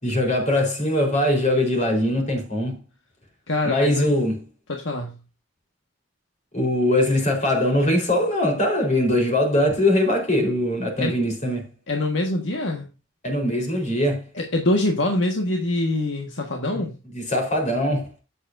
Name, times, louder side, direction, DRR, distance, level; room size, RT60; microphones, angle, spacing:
voice 1, 0.0-2.8 3.6-4.4 6.5-11.7 13.2-14.2 16.7-16.9 17.1-18.1, left 1 dB, 40° left, 4.3 m, -21 dB
voice 2, 3.5-4.1 4.7-5.1 11.0-11.2 11.9-12.9 14.3-16.9, left 1 dB, 75° left, 1.7 m, -24 dB
11.5 x 8.8 x 2.7 m
head